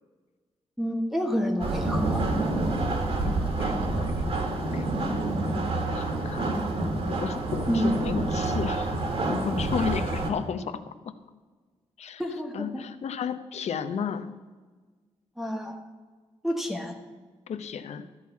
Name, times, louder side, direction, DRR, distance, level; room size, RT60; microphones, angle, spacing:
voice 1, 0.8-2.2 7.7-7.9 12.2-12.8 15.4-15.8 16.4-17.0, equal, ahead, 1 dB, 1.1 m, -29 dB
sound 1, 1.6-10.3, right 2 dB, 60° right, 1.7 m, -28 dB
voice 2, 3.2-5.3 5.9-6.6 7.0-8.9 9.3-11.2 12.0-12.2 12.5-14.3 17.5-18.1, left 7 dB, 70° left, 10 dB, 0.7 m, -33 dB
13.5 x 4.7 x 8.3 m, 1.4 s
wide cardioid pair, 140°, 11 cm